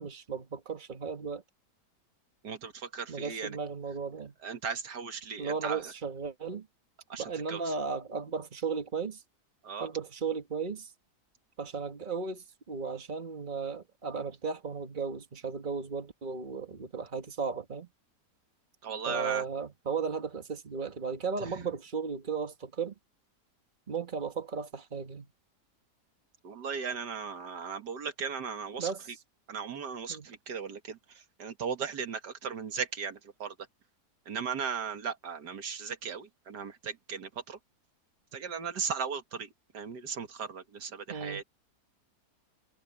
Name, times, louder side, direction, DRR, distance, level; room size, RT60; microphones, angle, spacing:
voice 1, 0.0-1.4 3.1-4.3 5.4-6.7 7.2-9.2 9.8-10.9 11.6-17.9 19.1-22.9 23.9-25.3 28.8-29.2 30.1-30.3 41.1-41.4, right 5 dB, 30° right, 1.8 m, -35 dB
voice 2, 2.4-3.6 4.4-5.8 7.1-7.6 9.6-9.9 18.8-19.4 26.4-28.9 29.5-31.0 31.4-33.5 34.3-37.6 38.3-39.5 39.7-41.4, right 6 dB, 85° right, 2.2 m, -37 dB
omnidirectional pair, 1.7 m